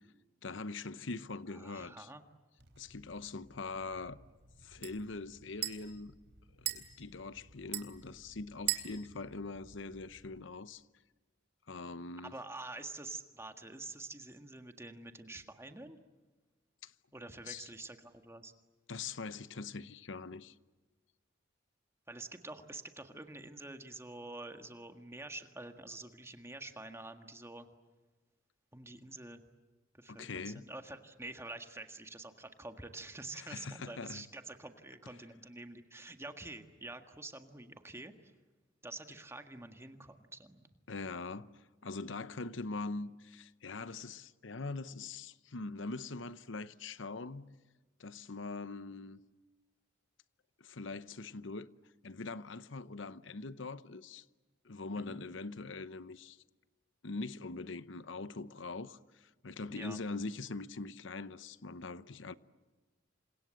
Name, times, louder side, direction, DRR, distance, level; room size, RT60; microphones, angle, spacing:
voice 1, 0.4-2.1 2.8-4.2 4.6-6.1 6.6-10.8 11.7-12.4 16.8-16.9 17.5-17.7 18.9-20.6 30.1-30.7 33.3-34.3 40.9-47.6 48.0-49.2 50.6-51.7 52.0-54.2 54.6-56.4 57.0-62.3, left 3 dB, 65° left, 0.9 m, -42 dB
voice 2, 1.5-2.2 12.2-16.0 17.1-18.5 22.1-27.7 28.7-29.4 29.9-38.1 38.8-40.7 54.9-55.2 59.7-60.0, right 2 dB, 15° right, 1.7 m, -47 dB
sound 1, 2.6-10.4, right 13 dB, 60° right, 3.7 m, -44 dB
29.0 x 26.0 x 7.7 m
head